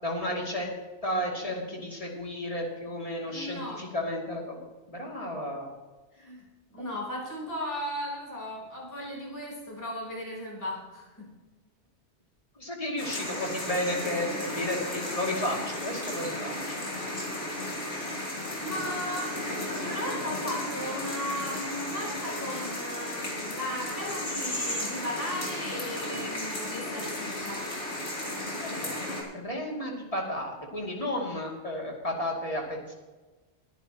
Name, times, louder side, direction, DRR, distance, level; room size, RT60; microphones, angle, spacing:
voice 1, 0.0-0.7 1.0-4.6 4.9-5.7 6.8-6.9 12.6-16.8 28.5-29.0 29.3-32.9, left 1 dB, 30° left, -1 dB, 2.7 m, -33 dB
voice 2, 3.2-3.8 6.1-11.3 18.6-27.6, left 1 dB, 15° left, -3 dB, 3.7 m, -36 dB
sound 1, 13.0-29.2, left 1 dB, 90° left, 3.3 m, -34 dB
22.0 x 9.9 x 2.9 m, 1.2 s
omnidirectional pair, 1.2 m